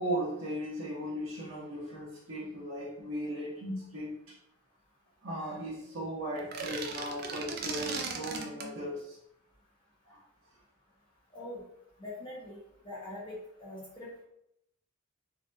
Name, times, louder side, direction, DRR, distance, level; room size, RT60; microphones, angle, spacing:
voice 1, 0.0-4.4 5.2-9.2 10.1-10.2, equal, 70° right, -7 dB, 0.7 m, -37 dB
sound 1, 6.4-8.7, right 4 dB, 45° right, 0.4 m, -37 dB
voice 2, 11.3-11.6 12.0-14.1, left 1 dB, 20° left, -7 dB, 1.2 m, -43 dB
3.3 x 2.6 x 2.6 m, 0.76 s
head